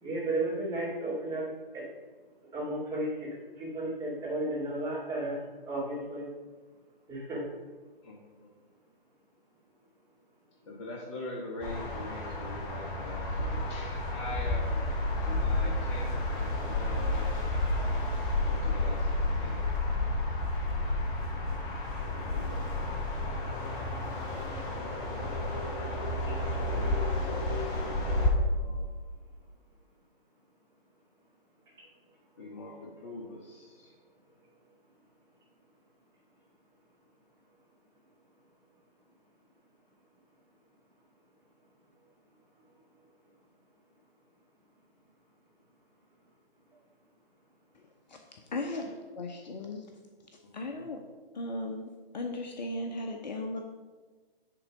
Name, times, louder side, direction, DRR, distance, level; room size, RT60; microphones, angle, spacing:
voice 1, 0.0-1.4 1.7-1.8 2.5-3.3 3.6-5.4 5.7-6.3 7.1-7.4, right 1 dB, 10° right, -8 dB, 2.3 m, -33 dB
voice 2, 10.7-14.8 15.2-17.3 18.4-19.6 22.0-23.1 26.6-26.9 27.3-29.0 32.4-33.9 50.4-50.9, left 2 dB, 30° left, -1 dB, 1.2 m, -43 dB
sound 1, 11.6-28.3, left 2 dB, 15° left, 0.8 m, -31 dB
voice 3, 48.5-49.8 50.5-51.0 51.3-53.6, left 2 dB, 45° left, 3 dB, 0.8 m, -36 dB
9.8 x 3.8 x 5.2 m, 1.4 s
figure-of-eight pair, 130°, 30 cm